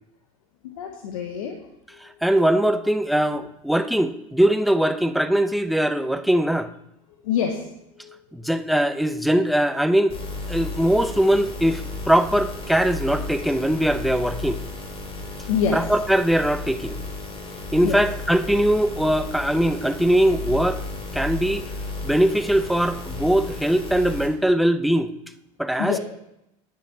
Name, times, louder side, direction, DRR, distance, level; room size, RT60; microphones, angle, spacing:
voice 1, 0.6-1.6 7.2-7.7 8.0-8.2 15.5-15.8 17.8-18.0 25.8-26.0, left 7 dB, 85° left, 3 dB, 0.9 m, -26 dB
voice 2, 2.0-6.7 8.3-10.1 10.5-14.6 15.7-17.0 17.7-20.8 21.1-21.7 22.0-25.1 25.6-26.0, right 1 dB, ahead, 9 dB, 0.6 m, -21 dB
sound 1, 10.1-24.3, left 2 dB, 35° left, 2.8 m, -33 dB
9.3 x 5.3 x 4.9 m, 0.85 s
hypercardioid pair, 80°, 18 cm